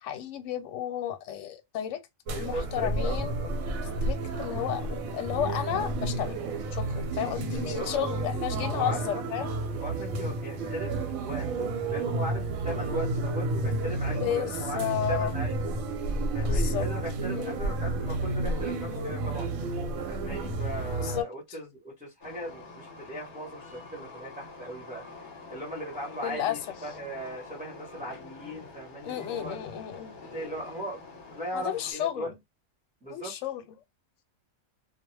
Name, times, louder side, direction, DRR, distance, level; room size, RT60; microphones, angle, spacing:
voice 1, 0.0-2.0 2.4-3.3 3.8-6.3 6.7-9.5 14.1-15.3 16.4-16.9 17.3-17.6 21.0-21.3 26.2-26.6 29.0-30.2 31.5-32.4 33.1-33.8, left 11 dB, 70° left, 0.9 m, -32 dB
voice 2, 2.3-3.5 7.6-7.9 8.7-9.2 9.8-15.7 16.3-19.5 20.1-25.0 25.5-29.6 30.3-31.0 31.3-32.3 33.0-33.3, right 1 dB, 5° right, 0.8 m, -38 dB
sound 1, 2.3-21.2, right 2 dB, 80° right, 1.1 m, -31 dB
Train, 22.2-31.9, left 3 dB, 45° left, 0.9 m, -46 dB
2.3 x 2.1 x 3.1 m
omnidirectional pair, 1.4 m